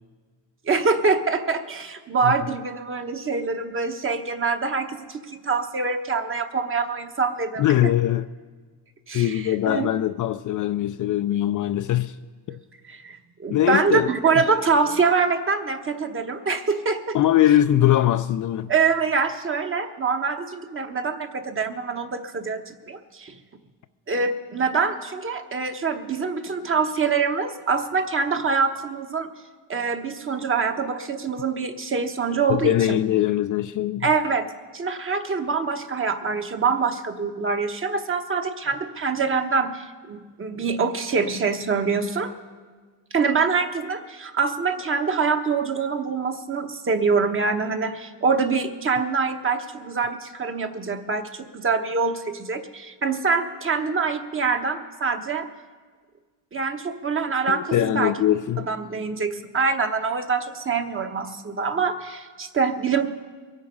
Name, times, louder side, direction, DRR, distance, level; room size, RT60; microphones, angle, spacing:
voice 1, 0.6-7.7 9.1-9.9 12.5-12.6 12.9-17.2 18.7-23.3 24.1-29.3 29.7-33.0 34.0-34.5 34.7-42.3 43.1-55.5 56.5-58.1 58.6-63.1, right 5 dB, 30° right, 1.1 m, -25 dB
voice 2, 7.6-8.3 9.1-12.2 13.5-14.1 17.1-18.7 32.5-34.1 57.5-58.7, left 12 dB, 45° left, 0.4 m, -21 dB
22.5 x 8.8 x 5.4 m
cardioid pair, 115°, 45 cm